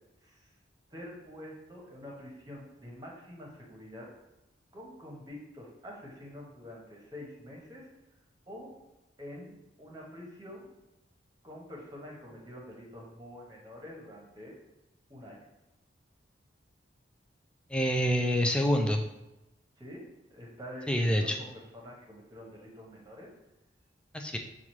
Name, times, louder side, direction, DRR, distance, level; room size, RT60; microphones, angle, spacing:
voice 1, 0.9-4.1 4.7-7.9 8.5-8.7 9.2-10.7 11.4-14.6 15.1-15.4 19.8-20.1 20.3-23.3, left 1 dB, 20° right, -2 dB, 1.0 m, -46 dB
voice 2, 17.7-19.0 20.9-21.4 24.1-24.4, equal, 5° left, 3 dB, 0.3 m, -26 dB
6.9 x 2.4 x 3.1 m, 0.97 s
head